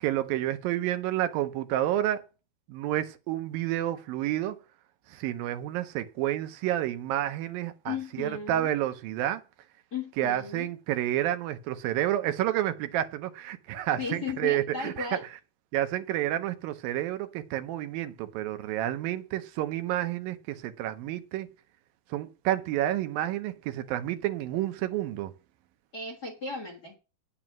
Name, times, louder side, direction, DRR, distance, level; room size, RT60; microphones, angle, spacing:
voice 1, 0.0-2.2 2.7-4.6 5.1-9.4 10.2-15.1 15.7-21.5 22.1-25.3, right 13 dB, 80° right, 2.4 m, -30 dB
voice 2, 7.8-8.7 9.9-10.7 14.0-15.2 25.9-27.0, left 5 dB, 40° left, 1.5 m, -36 dB
9.1 x 8.6 x 6.0 m
omnidirectional pair, 4.2 m